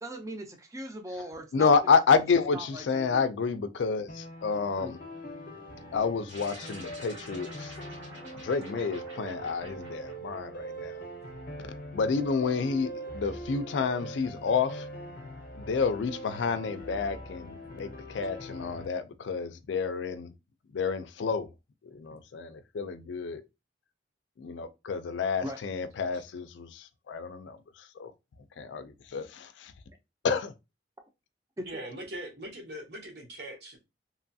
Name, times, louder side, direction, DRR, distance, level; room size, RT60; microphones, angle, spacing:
voice 1, 0.0-1.8 2.5-3.3 4.8-4.9 22.1-22.2 25.4-25.6 31.6-31.8, right 1 dB, 15° right, 0.4 m, -39 dB
voice 2, 1.5-5.0 5.9-7.7 8.3-11.0 11.9-14.9 15.5-20.3 20.7-21.5 21.8-23.4 24.4-28.1 28.6-29.7 30.2-30.5, left 5 dB, 80° left, 0.4 m, -29 dB
sound 1, 4.1-18.9, right 1 dB, 45° left, 0.6 m, -42 dB
sound 2, 6.3-11.0, right 1 dB, 90° right, 1.5 m, -48 dB
voice 3, 31.7-33.8, right 1 dB, 60° right, 1.0 m, -41 dB
2.9 x 2.3 x 2.6 m
head